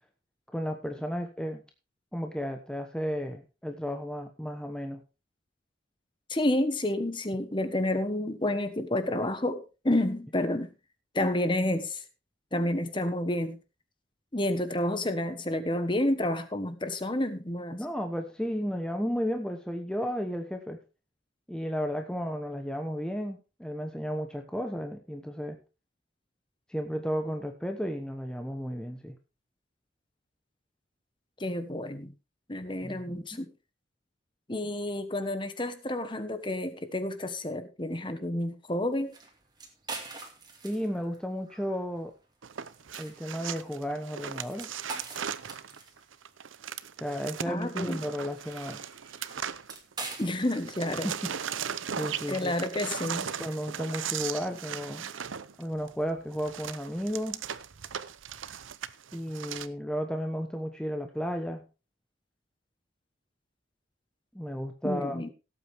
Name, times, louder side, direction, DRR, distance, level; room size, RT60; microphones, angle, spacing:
voice 1, 0.5-1.6 2.1-5.0 17.7-20.8 21.5-25.6 26.7-29.2 32.8-33.4 40.6-42.1 43.0-44.7 47.0-48.8 51.0-51.3 51.9-52.5 53.4-55.1 55.6-57.4 59.1-61.6 64.3-65.2, equal, 5° left, 4 dB, 1.0 m, -33 dB
voice 2, 6.3-10.7 11.1-12.0 12.5-13.6 14.3-17.8 31.4-32.1 32.5-33.5 34.5-39.2 47.5-48.0 50.2-51.1 52.3-53.3 64.8-65.3, left 1 dB, 25° left, 10 dB, 1.3 m, -30 dB
sound 1, 38.9-54.2, right 3 dB, 20° right, 2.5 m, -46 dB
Wood panel board debris heap scramble dump close, 42.4-50.1 50.4-59.7, right 8 dB, 90° right, 0.7 m, -38 dB
17.0 x 8.5 x 3.5 m, 0.30 s
head